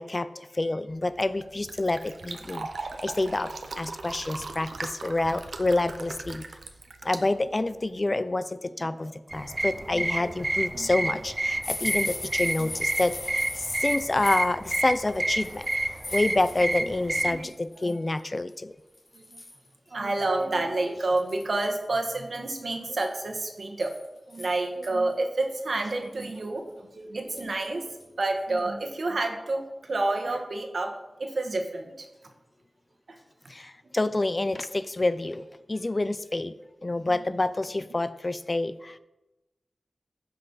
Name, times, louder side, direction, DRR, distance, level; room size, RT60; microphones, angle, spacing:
voice 1, 0.0-6.5 7.0-15.7 16.1-18.8 27.1-27.2 33.5-36.5 36.8-39.0, left 2 dB, 35° left, 13 dB, 0.4 m, -28 dB
Fill (with liquid), 0.9-8.0, right 3 dB, 85° right, 0.8 m, -40 dB
sound 1, 9.3-17.4, right 2 dB, 30° right, 0.5 m, -29 dB
voice 2, 9.8-10.3 10.7-10.9 12.6-12.7 17.2-17.5 17.8-17.9 19.1-19.4 19.9-23.9 24.3-30.9 31.2-32.1 33.1-33.2, right 2 dB, 65° right, 4 dB, 1.4 m, -29 dB
sound 2, 11.6-17.0 17.3-17.9 18.5-18.6 18.9-19.7 20.2-20.3 20.6-20.7 21.2-21.8 22.8-24.9 25.4-25.5 25.9-26.5 27.4-27.7 28.0-28.2 28.6-28.7, left 2 dB, 55° left, 2.7 m, -39 dB
15.0 x 5.5 x 4.0 m, 1.0 s
wide cardioid pair, 100°, 0 cm